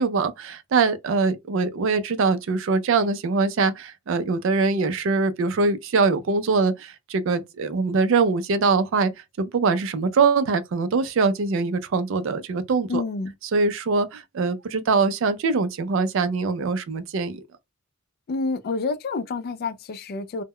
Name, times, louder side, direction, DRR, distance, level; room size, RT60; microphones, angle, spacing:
voice 1, 0.0-9.1 9.4-13.0 13.5-17.4, right 4 dB, 70° right, 0.4 m, -23 dB
voice 2, 12.9-13.3 18.3-20.4, left 3 dB, 50° left, 0.3 m, -28 dB
2.1 x 2.1 x 3.5 m
head